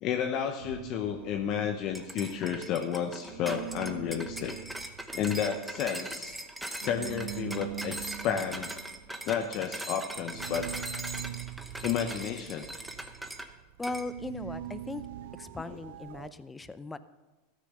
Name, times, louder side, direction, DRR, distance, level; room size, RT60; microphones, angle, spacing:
voice 1, 0.0-4.6 5.1-6.4 6.8-8.7 9.2-10.7 11.8-12.7 15.7-15.8, left 8 dB, 50° left, 5 dB, 0.8 m, -32 dB
sound 1, 0.6-3.0 3.2-16.3, right 13 dB, 75° right, 0.6 m, -43 dB
sound 2, 1.9-13.5 13.8-14.1, right 1 dB, 5° right, 0.9 m, -40 dB
voice 2, 13.8-15.1 15.3-17.0, left 3 dB, 10° left, 14 dB, 0.5 m, -38 dB
13.5 x 6.5 x 6.7 m, 1.2 s
supercardioid pair, 120°, 0 cm